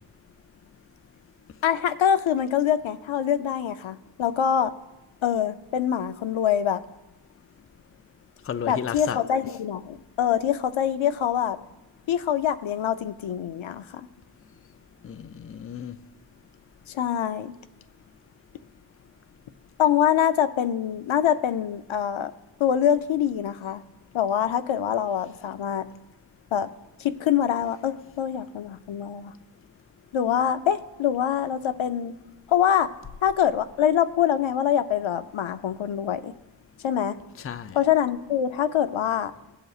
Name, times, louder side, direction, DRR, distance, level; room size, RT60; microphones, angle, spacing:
voice 1, 1.6-4.7 5.2-6.8 8.7-11.6 12.1-14.0 16.9-17.5 19.8-22.3 22.6-23.8 24.1-25.8 26.5-26.7 27.0-29.3 30.1-32.2 32.5-32.9 33.2-36.3 36.8-37.2 37.7-39.3, left 9 dB, 85° left, 0.6 m, -24 dB
voice 2, 8.5-9.2 15.0-16.0 37.4-37.8, left 8 dB, 30° left, 0.4 m, -33 dB
16.5 x 7.9 x 2.4 m
wide cardioid pair, 80°, 46 cm